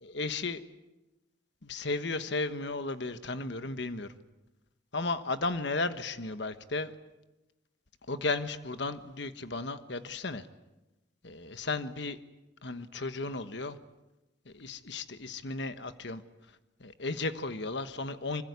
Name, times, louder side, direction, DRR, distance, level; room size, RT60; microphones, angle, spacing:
voice 1, 0.0-0.6 1.6-4.1 4.9-6.9 8.1-10.5 11.2-12.2 12.6-13.8 14.5-16.2 16.8-18.4, left 3 dB, 65° left, 10 dB, 1.3 m, -34 dB
25.5 x 24.5 x 8.2 m, 1.0 s
head